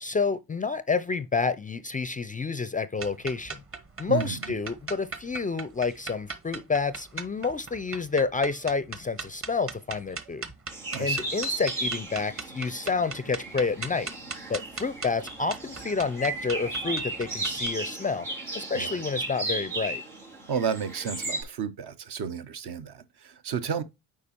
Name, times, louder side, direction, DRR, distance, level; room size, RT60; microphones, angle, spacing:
voice 1, 0.0-3.6 4.0-10.5 11.0-14.1 14.5-18.3 18.5-20.0, left 4 dB, 20° left, 0.4 m, -29 dB
sound 1, 3.0-17.7, right 4 dB, 30° right, 1.0 m, -39 dB
sound 2, 10.7-21.4, right 2 dB, 85° right, 2.6 m, -35 dB
voice 2, 10.9-11.3 18.7-19.0 20.5-23.8, right 7 dB, 60° right, 0.9 m, -32 dB
8.4 x 4.7 x 2.9 m
hypercardioid pair, 50°, 45 cm